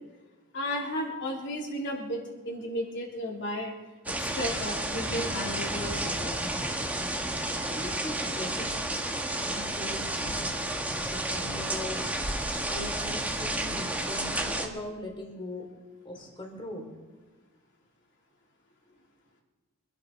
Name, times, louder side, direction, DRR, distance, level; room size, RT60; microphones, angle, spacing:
voice 1, 0.5-2.2 2.5-3.7 4.2-6.3, equal, 55° left, -1 dB, 3.6 m, -34 dB
sound 1, 4.1-14.7, right 1 dB, 5° right, 1.4 m, -31 dB
voice 2, 7.7-8.7 9.3-12.0 12.7-15.7 16.0-16.9 18.9-19.0, left 1 dB, 25° left, 1 dB, 3.9 m, -40 dB
26.0 x 12.0 x 4.2 m, 1.3 s
head